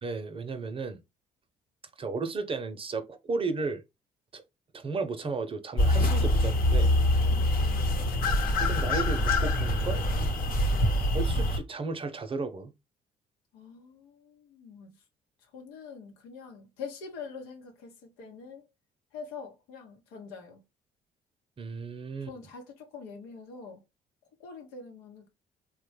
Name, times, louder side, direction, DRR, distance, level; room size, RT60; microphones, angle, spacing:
voice 1, 0.0-1.0 2.0-3.8 4.3-4.4 4.7-6.9 8.6-10.0 11.1-12.7 21.6-22.3, right 4 dB, 35° right, 0.7 m, -34 dB
sound 1, 5.8-11.6, left 1 dB, 65° left, 1.0 m, -25 dB
voice 2, 7.2-7.9 13.5-14.9 15.5-18.6 19.1-20.6 22.2-23.8 24.4-25.3, left 5 dB, 85° left, 0.9 m, -44 dB
3.1 x 2.2 x 3.2 m
supercardioid pair, 65°, 16 cm